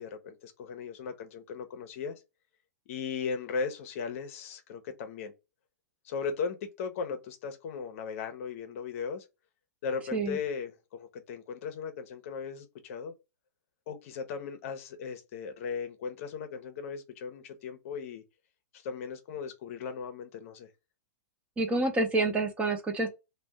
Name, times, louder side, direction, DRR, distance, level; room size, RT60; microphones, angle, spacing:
voice 1, 0.0-2.2 2.9-5.3 6.0-9.2 9.8-13.1 13.9-18.2 18.7-20.7, left 5 dB, 55° left, 0.6 m, -37 dB
voice 2, 21.6-23.1, right 2 dB, 15° right, 0.7 m, -28 dB
2.6 x 2.1 x 3.3 m
hypercardioid pair, 115°, 9 cm